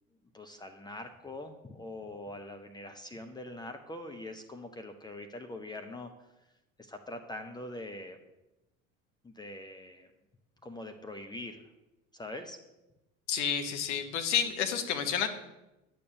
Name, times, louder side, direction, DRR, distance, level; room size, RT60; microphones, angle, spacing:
voice 1, 0.3-6.1 6.8-8.2 9.2-10.1 10.6-11.7 12.1-12.6, left 1 dB, 10° left, 5 dB, 0.7 m, -43 dB
voice 2, 13.3-15.3, left 8 dB, 60° left, 7 dB, 1.3 m, -30 dB
10.0 x 6.9 x 6.7 m, 0.98 s
figure-of-eight pair, 70°, 39 cm